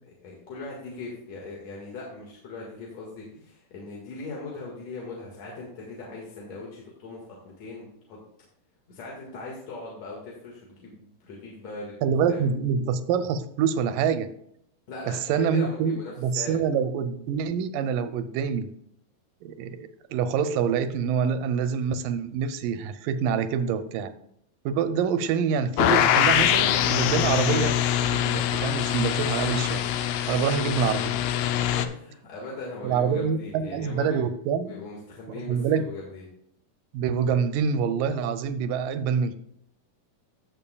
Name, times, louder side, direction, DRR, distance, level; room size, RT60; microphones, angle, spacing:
voice 1, 0.0-8.2 8.9-11.9 12.3-12.5 14.9-16.6 30.2-30.4 31.4-34.3 34.6-36.3, left 3 dB, 55° left, -3 dB, 2.6 m, -40 dB
voice 2, 12.0-14.3 15.1-18.7 19.4-24.1 24.7-27.8 28.1-29.9 30.3-31.2 32.8-34.8 35.5-35.9 36.9-39.4, right 7 dB, 80° right, 10 dB, 2.1 m, -26 dB
sound 1, 25.8-31.9, left 10 dB, 80° left, 2.0 m, -23 dB
15.5 x 7.0 x 2.3 m, 0.72 s
omnidirectional pair, 4.3 m